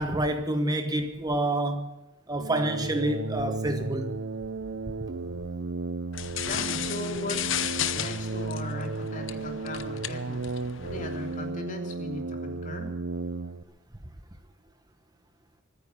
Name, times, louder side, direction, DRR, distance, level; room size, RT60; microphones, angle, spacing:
voice 1, 0.0-1.9 2.3-4.2, right 1 dB, 20° right, 1.0 m, -28 dB
sound 1, 2.3-13.6, right 3 dB, 60° right, 0.6 m, -34 dB
sound 2, 6.1-11.4, left 10 dB, 75° left, 0.9 m, -34 dB
voice 2, 6.4-7.7 7.9-10.4 10.8-12.9, left 2 dB, 40° left, 3.1 m, -38 dB
25.0 x 9.6 x 5.6 m
head